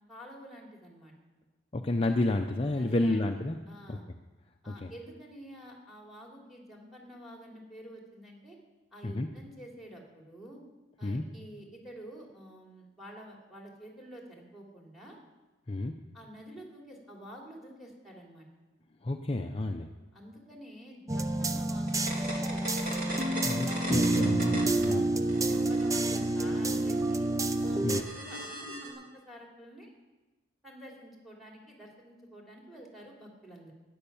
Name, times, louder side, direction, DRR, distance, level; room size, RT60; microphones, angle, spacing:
voice 1, 0.1-1.1 2.7-3.2 3.7-4.0 4.6-8.6 8.9-10.6 11.0-15.2 16.1-18.5 20.1-23.0 23.3-23.5 24.7-24.9 25.3-27.3 27.6-29.9 30.6-33.7, equal, ahead, 0 dB, 3.1 m, -49 dB
voice 2, 1.7-3.6 3.9-4.0 4.7-4.9 9.0-9.3 11.0-11.2 15.7-15.9 19.0-19.9 23.4-25.1 27.8-28.0, left 2 dB, 30° left, 3 dB, 0.6 m, -30 dB
sound 1, 21.1-28.0, right 2 dB, 15° right, 0.5 m, -28 dB
sound 2, 21.9-24.9 25.2-28.9, right 1 dB, 45° right, 3.0 m, -40 dB
13.0 x 10.0 x 7.0 m, 1.2 s
head